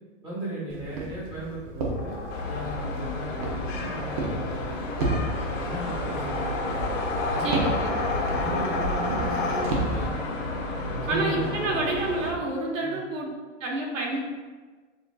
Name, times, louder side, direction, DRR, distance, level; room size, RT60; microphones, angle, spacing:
voice 1, 0.2-2.1 2.4-5.0 5.5-6.6 7.3-7.7 8.0-10.1 10.9-11.5 11.8-11.9 12.8-13.0, right 2 dB, 15° right, -8 dB, 1.2 m, -36 dB
Walk footsteps, 0.7-10.1, right 2 dB, 30° right, 0.5 m, -33 dB
sound 1, 1.8-10.1, left 3 dB, 40° left, 0.7 m, -33 dB
sound 2, 2.3-12.3, left 2 dB, 75° left, 1.2 m, -32 dB
voice 2, 7.4-7.9 11.1-13.3 13.6-14.2, right 2 dB, 80° right, -1 dB, 1.3 m, -28 dB
6.8 x 2.6 x 2.3 m, 1.4 s
hypercardioid pair, 155°, 38 cm